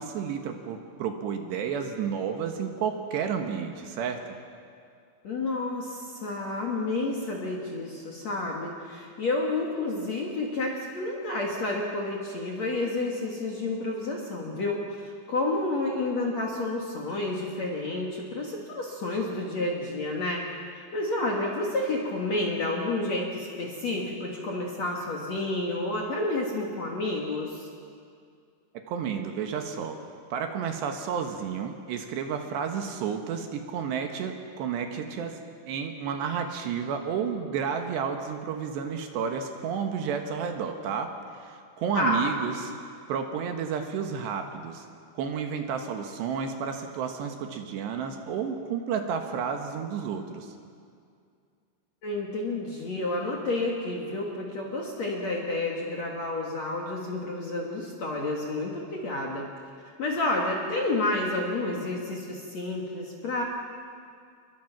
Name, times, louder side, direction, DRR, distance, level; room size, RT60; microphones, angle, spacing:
voice 1, 0.0-4.4 28.7-30.0 30.3-41.1 41.4-42.7 43.1-44.9 45.2-50.5, right 7 dB, 70° right, 5 dB, 3.3 m, -31 dB
voice 2, 5.2-20.4 20.7-27.7 41.9-42.3 52.0-59.5 60.0-63.4, left 2 dB, 50° left, -1 dB, 2.4 m, -30 dB
29.0 x 22.5 x 6.0 m, 2.3 s
omnidirectional pair, 5.6 m